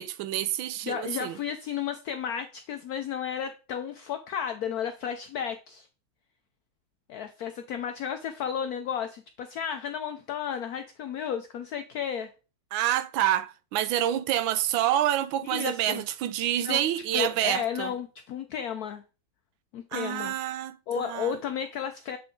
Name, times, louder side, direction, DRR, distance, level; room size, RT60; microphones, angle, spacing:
voice 1, 0.0-1.4 12.7-17.9 19.9-21.4, right 12 dB, 80° right, 1.3 m, -28 dB
voice 2, 0.8-5.9 7.1-12.3 15.4-16.0 16.6-16.8 17.1-19.0 19.7-20.3 20.9-22.2, left 8 dB, 90° left, 0.8 m, -33 dB
7.6 x 3.7 x 3.7 m
omnidirectional pair, 2.2 m